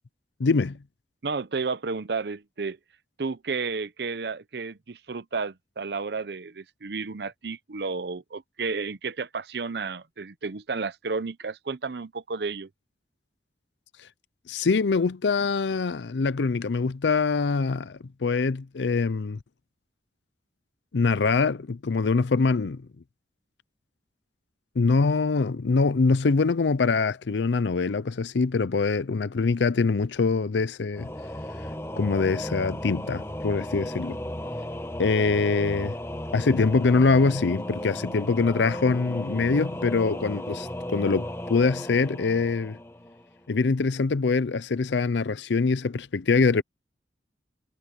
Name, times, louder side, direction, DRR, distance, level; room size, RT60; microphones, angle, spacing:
voice 1, 0.4-0.8 14.5-19.4 20.9-22.8 24.8-31.1 32.0-34.2 35.0-36.0 36.3-42.8 43.5-46.6, left 4 dB, 85° left, 0.5 m, -24 dB
voice 2, 1.2-2.8 3.2-12.7, right 4 dB, 70° right, 0.7 m, -32 dB
Singing / Musical instrument, 30.9-43.5, left 1 dB, 15° left, 1.1 m, -35 dB
head